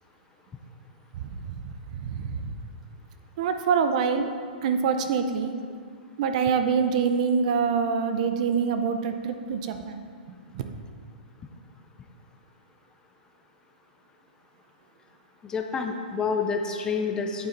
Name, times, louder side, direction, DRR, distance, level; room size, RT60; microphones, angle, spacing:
voice 1, 1.1-2.5 3.4-4.3 4.6-5.5 6.2-10.8, right 6 dB, 50° right, 8 dB, 0.6 m, -26 dB
voice 2, 15.4-17.5, left 5 dB, 15° left, 4 dB, 0.5 m, -28 dB
8.6 x 6.9 x 3.9 m, 2.1 s
hypercardioid pair, 155°, 5 cm